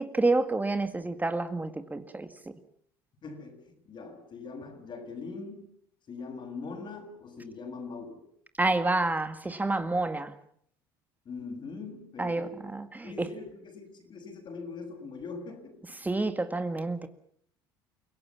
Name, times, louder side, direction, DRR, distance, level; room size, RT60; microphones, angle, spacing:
voice 1, 0.0-2.3 8.6-10.4 12.2-13.3 16.0-17.1, right 2 dB, 15° right, 9 dB, 1.9 m, -29 dB
voice 2, 3.2-5.7 6.1-8.2 11.2-12.8 13.0-16.0, left 4 dB, 40° left, 4 dB, 7.0 m, -42 dB
29.5 x 18.0 x 7.4 m, 0.67 s
hypercardioid pair, 60°, 12 cm